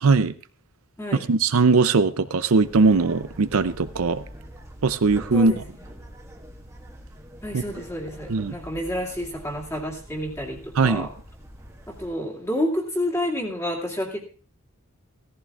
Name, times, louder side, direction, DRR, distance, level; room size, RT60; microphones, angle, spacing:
voice 1, 0.0-0.3 1.3-4.2 4.8-5.5 7.5-7.6 8.3-8.6 10.8-11.1, right 4 dB, 80° right, 13 dB, 0.6 m, -20 dB
sound 1, 2.6-12.1, equal, 15° right, 1.6 m, -44 dB
voice 2, 7.4-11.1 11.9-14.2, left 1 dB, 15° left, 0 dB, 2.3 m, -29 dB
17.0 x 14.5 x 2.4 m, 0.39 s
head